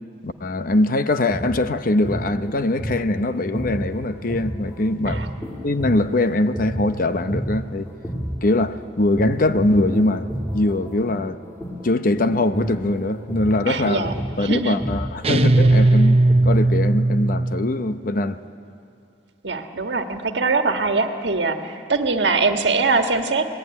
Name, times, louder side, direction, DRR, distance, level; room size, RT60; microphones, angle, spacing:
voice 1, 0.2-7.9 8.4-10.3 10.5-11.4 11.8-14.1 14.4-16.2 16.4-18.4, left 2 dB, 50° left, 0.8 m, -22 dB
sound 1, 1.1-8.8 9.2-16.8, equal, 15° left, 5.0 m, -31 dB
voice 2, 13.7-14.1 14.4-14.8 19.4-23.5, right 4 dB, 75° right, 1.6 m, -22 dB
sound 2, 15.2-17.8, right 2 dB, 35° right, 0.8 m, -17 dB
26.0 x 19.5 x 9.7 m
head